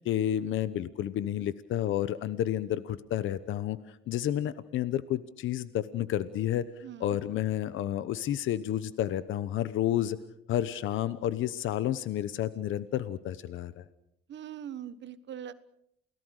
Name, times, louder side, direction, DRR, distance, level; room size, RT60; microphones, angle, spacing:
voice 1, 0.0-6.7 7.0-10.2 10.5-13.8, left 11 dB, 80° left, 15 dB, 1.0 m, -30 dB
voice 2, 6.8-7.2 14.3-15.5, right 10 dB, 65° right, 13 dB, 1.5 m, -41 dB
29.0 x 18.5 x 6.6 m, 0.75 s
cardioid pair, 90°, 20 cm